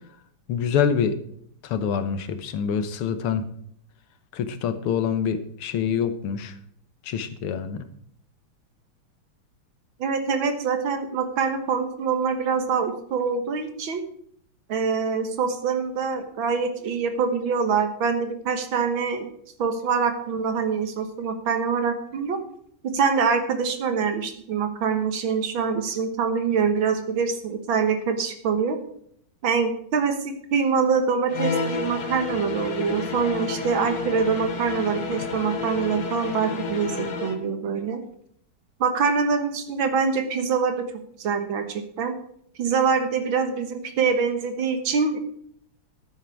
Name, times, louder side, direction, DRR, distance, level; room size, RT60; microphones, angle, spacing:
voice 1, 0.5-1.2 1.6-3.5 4.3-6.6 7.0-7.9, left 7 dB, 80° left, 10 dB, 1.9 m, -26 dB
voice 2, 10.0-14.0 14.7-19.3 19.6-22.4 22.8-28.8 29.4-38.0 38.8-40.9 41.2-42.1 42.6-45.2, right 5 dB, 65° right, 8 dB, 2.0 m, -24 dB
sound 1, 31.3-37.4, left 4 dB, 50° left, 1.6 m, -30 dB
11.5 x 9.3 x 4.7 m, 0.67 s
omnidirectional pair, 2.4 m